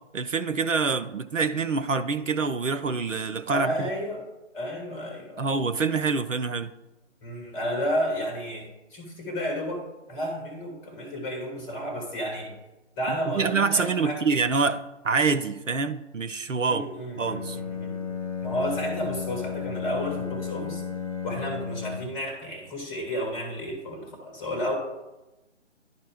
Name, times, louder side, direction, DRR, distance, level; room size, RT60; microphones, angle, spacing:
voice 1, 0.1-3.9 5.4-6.7 13.3-16.8 17.2-17.6, right 4 dB, 90° right, 0.7 m, -26 dB
voice 2, 3.5-4.3 4.5-5.5 7.2-12.5 13.0-14.2 16.6-18.1 18.4-20.8 21.2-24.7, equal, 10° left, 1.2 m, -32 dB
Bowed string instrument, 17.1-22.2, left 6 dB, 30° left, 0.4 m, -34 dB
11.0 x 4.2 x 3.5 m
figure-of-eight pair, 145°, 37 cm